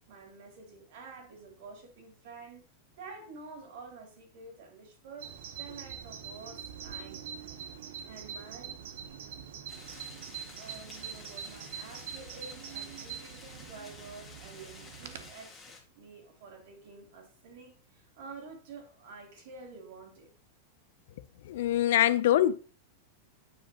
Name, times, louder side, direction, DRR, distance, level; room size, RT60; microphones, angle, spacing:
voice 1, 0.1-2.6 3.0-7.5 8.0-8.7 10.6-20.3, right 4 dB, 60° right, 3.1 m, -49 dB
Bird vocalization bird call bird song, 5.2-15.3, right 8 dB, 80° right, 0.9 m, -44 dB
sound 1, 9.7-15.8, left 4 dB, 15° left, 1.8 m, -51 dB
voice 2, 21.5-22.6, left 12 dB, 70° left, 0.5 m, -24 dB
9.4 x 5.1 x 2.9 m
supercardioid pair, 155°, 0 cm